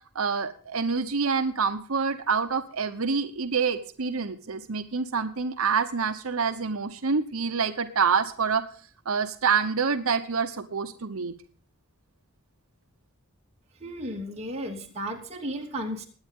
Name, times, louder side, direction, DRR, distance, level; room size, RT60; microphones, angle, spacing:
voice 1, 0.1-8.6 9.1-11.4, right 5 dB, 85° right, 8 dB, 1.0 m, -27 dB
voice 2, 13.8-16.1, equal, 30° right, 0 dB, 2.8 m, -34 dB
20.5 x 9.0 x 3.7 m, 0.41 s
head